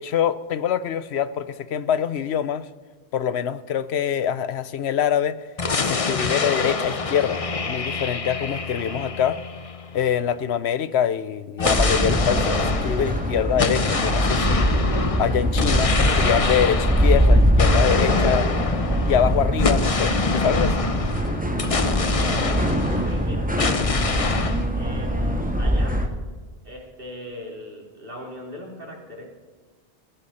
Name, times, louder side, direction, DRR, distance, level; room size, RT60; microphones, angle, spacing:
voice 1, 0.0-2.7 3.1-5.4 5.8-9.4 9.9-14.8 15.2-18.5 19.0-20.9, left 9 dB, 85° left, 15 dB, 1.0 m, -25 dB
sound 1, 5.6-10.3 11.6-23.2 23.6-24.7, left 4 dB, 35° left, 0.9 m, -26 dB
sound 2, 11.6-26.1, equal, 10° right, 1.5 m, -22 dB
voice 2, 22.9-23.6 24.7-26.1 26.6-29.3, left 1 dB, 55° right, -1 dB, 3.6 m, -39 dB
22.0 x 14.5 x 4.3 m, 1.3 s
omnidirectional pair, 1.1 m